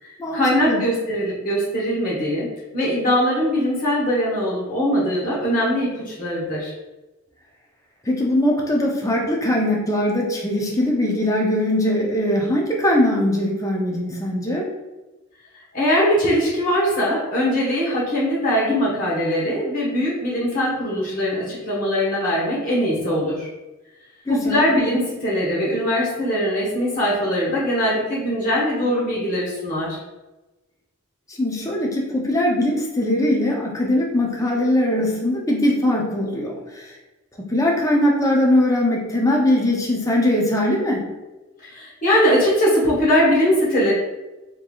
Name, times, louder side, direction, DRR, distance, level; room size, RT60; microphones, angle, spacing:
voice 1, 0.0-2.5 2.7-6.7 15.7-23.5 24.3-30.0 41.6-43.9, equal, 40° left, -7 dB, 1.1 m, -21 dB
voice 2, 8.0-14.7 24.3-24.7 31.3-36.9 37.5-41.1, left 1 dB, 15° left, -1 dB, 0.5 m, -21 dB
3.6 x 3.3 x 2.3 m, 1.1 s
head